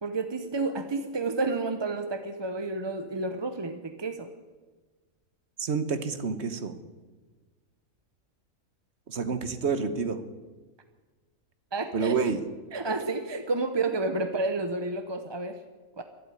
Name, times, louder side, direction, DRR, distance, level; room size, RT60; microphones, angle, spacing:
voice 1, 0.0-4.3 11.7-12.2 12.7-15.6 16.0-16.1, right 3 dB, 25° right, 8 dB, 0.6 m, -30 dB
voice 2, 5.6-6.8 9.1-10.2 11.9-12.4, right 5 dB, 55° right, 11 dB, 1.3 m, -28 dB
12.0 x 11.5 x 9.7 m, 1.3 s
omnidirectional pair, 1.4 m